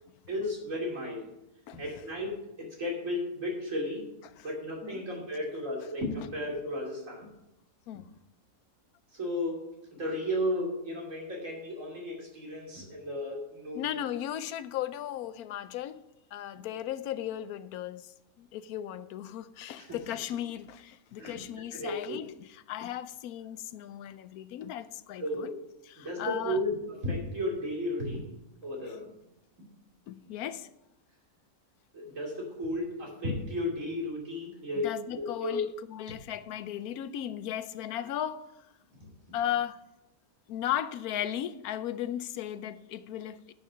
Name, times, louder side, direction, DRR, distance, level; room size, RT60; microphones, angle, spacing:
voice 1, 0.3-1.3 1.7-4.1 4.4-7.3 7.9-8.0 9.1-9.6 9.9-13.8 19.8-20.0 21.2-21.4 21.7-22.2 25.2-25.6 26.0-28.3 28.6-29.1 31.9-35.6 36.1-36.2 37.9-38.1 39.0-39.1, left 1 dB, 60° right, 3.2 m, -34 dB
voice 2, 13.7-16.0 16.3-18.1 18.4-25.5 25.8-26.6 30.1-30.7 34.8-38.5 39.3-39.8 40.5-43.5, left 11 dB, 85° left, 1.1 m, -36 dB
10.5 x 6.6 x 5.7 m
omnidirectional pair, 1.5 m